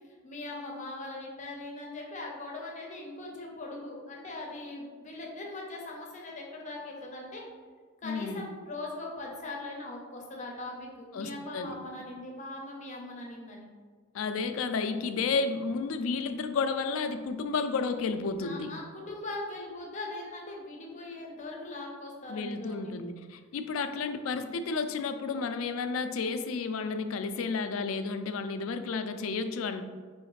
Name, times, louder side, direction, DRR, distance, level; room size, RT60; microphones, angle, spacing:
voice 1, 0.2-7.4 8.0-13.7 15.8-16.0 18.4-22.9, left 2 dB, 35° left, -1 dB, 0.7 m, -40 dB
voice 2, 8.0-8.5 11.1-11.7 14.1-18.7 22.3-29.8, left 4 dB, 80° left, 9 dB, 0.4 m, -32 dB
4.9 x 3.1 x 3.1 m, 1.6 s
head